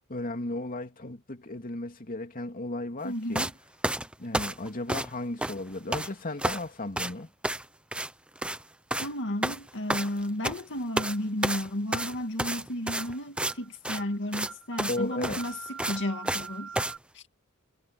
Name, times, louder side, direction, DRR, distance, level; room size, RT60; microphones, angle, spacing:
voice 1, 0.1-3.4 4.2-7.3 14.9-15.5, left 2 dB, 40° left, 2.6 m, -35 dB
voice 2, 3.0-3.5 9.0-16.7 17.1-17.2, left 1 dB, 55° left, 2.2 m, -33 dB
sound 1, 3.4-3.5 3.8-5.1 5.4-6.1 6.4-6.7 7.0-7.1 7.4-7.7 7.9-8.1 8.4-8.6 8.9-9.1 9.4-10.6 11.0-11.2 11.4-13.5 13.8-14.0 14.3-14.5 14.8-15.0 15.2-16.5 16.8-16.9, right 1 dB, 5° right, 0.9 m, -30 dB
sound 2, 10.0-10.2 11.0-11.2 12.0-12.2 13.0-13.2 13.5-13.7 14.0-14.2 14.5-17.0, right 6 dB, 70° right, 7.4 m, -44 dB
head